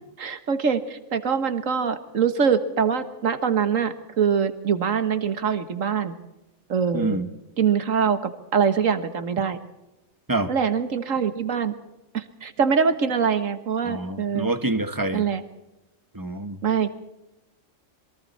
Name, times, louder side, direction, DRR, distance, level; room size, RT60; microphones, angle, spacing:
voice 1, 0.2-6.1 6.7-7.2 7.6-8.2 8.5-9.6 10.5-11.7 12.1-14.5 15.1-15.4 16.6-17.0, right 6 dB, 80° right, 11 dB, 1.8 m, -23 dB
voice 2, 6.9-7.3 10.3-10.5 13.8-15.2 16.1-16.6, right 2 dB, 15° right, 10 dB, 1.2 m, -26 dB
27.0 x 22.5 x 4.3 m, 0.98 s
omnidirectional pair, 1.3 m